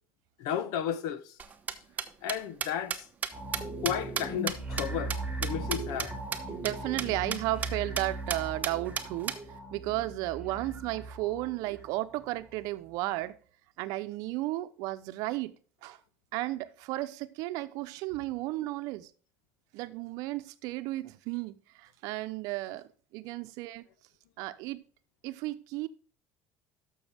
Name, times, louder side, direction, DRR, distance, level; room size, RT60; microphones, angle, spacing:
voice 1, 0.4-1.3 2.2-3.0 3.8-6.1, left 9 dB, 75° left, 1.0 m, -33 dB
sound 1, 1.4-6.1 6.3-6.4 6.6-6.7 7.0-7.1 7.3-7.7 8.0-8.1 8.3-9.4, right 6 dB, 25° right, 1.0 m, -33 dB
sound 2, 3.3-12.6 13.0-13.1, right 2 dB, 10° right, 2.4 m, -39 dB
voice 2, 6.5-9.4 9.7-13.4 13.8-15.5 15.8-16.0 16.3-19.1 19.7-23.8 24.4-24.8 25.2-25.9, right 17 dB, 75° right, 0.8 m, -34 dB
12.5 x 6.3 x 3.5 m
cardioid pair, 130°, 6 cm